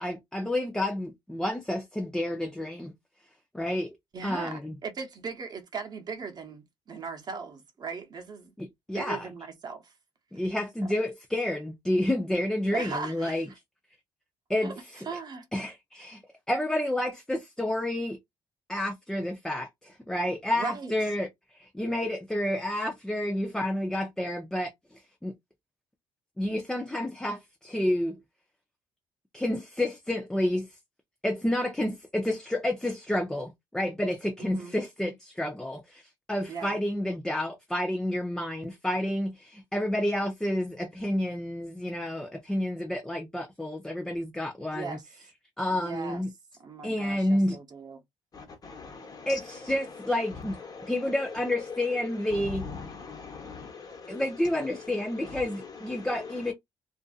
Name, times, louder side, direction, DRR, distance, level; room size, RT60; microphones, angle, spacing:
voice 1, 0.0-2.9 3.5-4.0 4.2-4.7 8.6-9.3 10.3-13.5 14.5-15.0 15.5-16.2 16.5-18.2 18.7-25.3 26.4-28.2 29.3-30.8 31.2-45.0 45.6-46.3 46.8-47.6 49.3-50.6 50.9-52.7 54.1-56.5, left 1 dB, 5° left, 0.5 m, -30 dB
voice 2, 4.1-8.5 8.9-9.9 12.7-13.4 14.6-15.4 20.6-20.9 34.4-34.8 36.5-36.8 44.7-45.0 45.7-46.2 46.6-48.0, right 5 dB, 45° right, 0.9 m, -38 dB
voice 3, 48.3-56.5, left 5 dB, 40° left, 1.1 m, -42 dB
2.6 x 2.5 x 2.3 m
cardioid pair, 85°, 9 cm